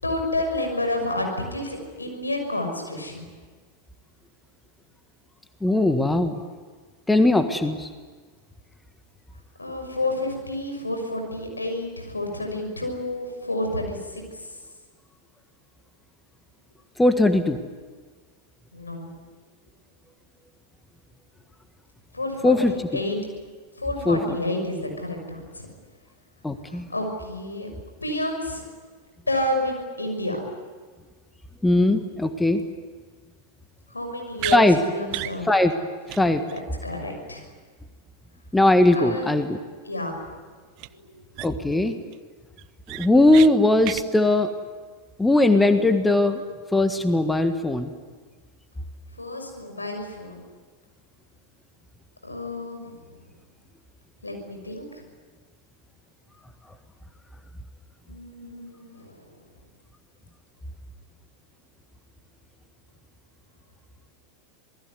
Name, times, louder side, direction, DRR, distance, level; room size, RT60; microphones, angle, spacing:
voice 1, 0.0-3.2 9.6-14.2 18.7-19.1 22.1-23.2 23.8-25.7 26.9-27.7 28.0-28.6 29.3-30.4 33.9-35.5 36.5-37.5 38.9-39.3 39.8-40.2 40.9-41.3 49.2-50.5 52.2-52.9 54.2-54.9 58.1-59.3, left 1 dB, 85° left, 3 dB, 6.3 m, -30 dB
voice 2, 5.6-6.4 7.1-7.9 17.0-17.6 22.4-22.7 24.0-24.4 26.4-26.9 31.6-32.6 34.5-34.8 35.5-35.7 36.1-36.4 38.5-39.6 41.4-42.0 43.0-44.5 45.2-46.4 46.7-47.9, left 2 dB, 10° left, 8 dB, 1.7 m, -19 dB
sound 1, 34.4-34.6 35.1-35.4 35.7-35.8 36.1-36.2 36.5-36.6 40.8-40.9 41.3-41.7 42.1-42.2 42.6-43.5 43.8-44.0, right 19 dB, 45° right, 0.7 m, -32 dB
27.0 x 20.0 x 9.7 m, 1.5 s
figure-of-eight pair, 90°, 0 cm